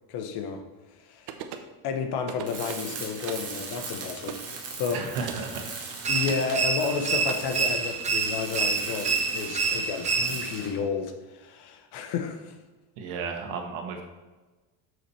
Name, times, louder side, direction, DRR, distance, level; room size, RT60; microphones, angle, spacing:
voice 1, 0.1-0.6 1.0-1.3 1.8-4.4 4.8-5.0 6.1-12.6, left 6 dB, 60° left, 6 dB, 1.2 m, -31 dB
sound 1, 1.3-1.7 2.3-2.9 3.3-3.5 4.3-4.5 5.3-5.5 6.3-6.5 7.3-7.4, right 9 dB, 55° right, 0.9 m, -38 dB
Tools, 2.4-10.8, right 4 dB, 35° right, 1.8 m, -39 dB
voice 2, 4.9-5.7 6.0-6.1 13.0-14.0, right 5 dB, 80° right, 3 dB, 1.6 m, -34 dB
sound 2, 6.0-10.7, right 4 dB, 15° right, 0.5 m, -27 dB
6.7 x 6.4 x 4.3 m, 1.2 s
cardioid pair, 125°, 45 cm